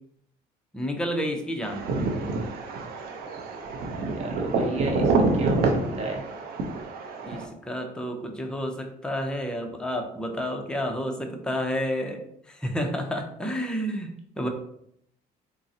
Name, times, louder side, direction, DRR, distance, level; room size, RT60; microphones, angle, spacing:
voice 1, 0.7-1.8 7.2-12.2 12.5-14.5, equal, 5° left, 3 dB, 0.4 m, -30 dB
sound 1, 1.6-7.4, right 3 dB, 65° right, 0.5 m, -27 dB
voice 2, 4.1-6.2, right 2 dB, 40° right, 0 dB, 0.8 m, -32 dB
3.7 x 2.0 x 2.6 m, 0.72 s
cardioid pair, 110°, 17 cm